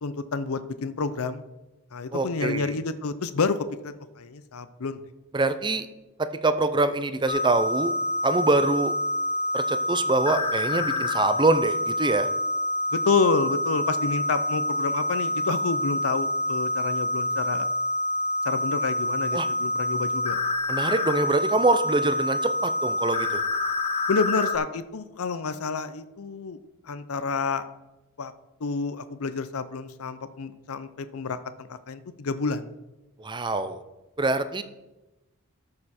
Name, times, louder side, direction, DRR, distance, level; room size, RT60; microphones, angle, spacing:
voice 1, 0.0-1.4 1.9-3.6 3.8-5.0 12.9-17.7 18.5-20.4 24.1-26.6 26.9-27.6 28.2-28.3 28.6-32.7, left 4 dB, 65° left, 13 dB, 0.6 m, -29 dB
voice 2, 2.1-2.7 5.3-5.9 6.4-7.9 8.2-8.9 9.5-12.3 19.3-19.5 20.7-23.4 33.2-33.8 34.2-34.6, right 2 dB, 20° right, 11 dB, 0.6 m, -24 dB
sound 1, 7.3-24.6, left 1 dB, 30° left, 0.7 m, -27 dB
13.0 x 6.7 x 4.3 m, 1.0 s
head